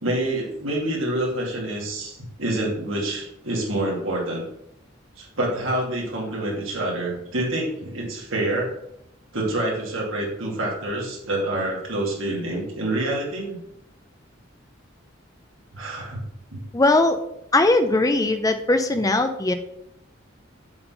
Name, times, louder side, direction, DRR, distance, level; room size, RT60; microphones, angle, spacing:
voice 1, 0.0-4.4 5.2-8.7 9.3-13.6 15.7-16.2 16.5-16.6, right 1 dB, 80° right, -3 dB, 2.5 m, -27 dB
voice 2, 16.7-17.2 17.5-19.5, left 2 dB, 15° left, 8 dB, 0.5 m, -19 dB
7.8 x 3.8 x 5.8 m, 0.80 s
head